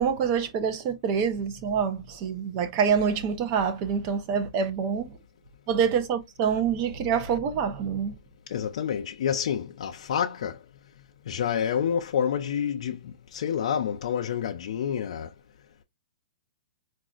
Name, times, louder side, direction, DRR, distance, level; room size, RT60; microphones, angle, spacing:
voice 1, 0.0-5.2 5.7-8.1, right 7 dB, 30° right, 0.6 m, -26 dB
voice 2, 8.5-10.6 11.3-15.3, left 8 dB, 65° left, 0.4 m, -28 dB
3.9 x 2.4 x 2.4 m
hypercardioid pair, 160°, 4 cm